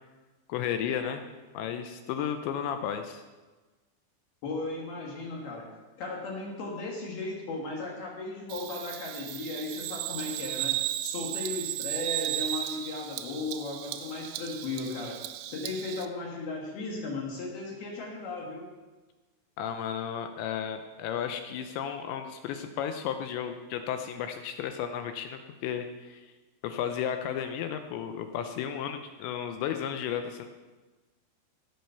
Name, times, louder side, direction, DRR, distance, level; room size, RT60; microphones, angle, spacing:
voice 1, 0.5-1.2 1.5-3.2 19.6-26.2 26.6-30.5, left 8 dB, 85° left, 7 dB, 2.7 m, -33 dB
voice 2, 4.4-5.7 6.0-10.7 11.0-15.2 15.5-18.7, left 3 dB, 60° left, -2 dB, 3.1 m, -36 dB
Bird vocalization bird call bird song, 8.5-16.1, right 14 dB, 90° right, 3.1 m, -35 dB
17.0 x 6.3 x 5.7 m, 1.2 s
omnidirectional pair, 5.6 m